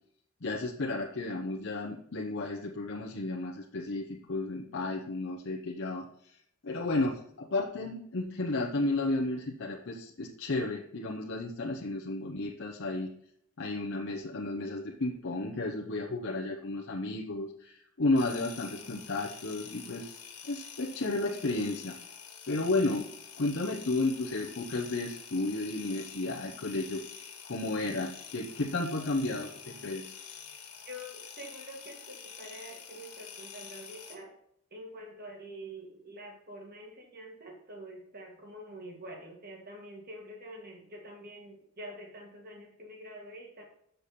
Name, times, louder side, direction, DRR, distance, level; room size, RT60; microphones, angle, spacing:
voice 1, 0.4-6.1 6.6-13.1 13.6-20.2 20.4-21.9 22.5-23.0 23.4-27.0 27.4-30.1, left 2 dB, 55° left, -2 dB, 0.8 m, -33 dB
sound 1, 18.1-34.2, left 7 dB, 90° left, 1.6 m, -47 dB
voice 2, 30.8-34.4 34.7-43.6, equal, 45° right, 1 dB, 1.9 m, -46 dB
7.0 x 6.6 x 4.2 m, 0.70 s
head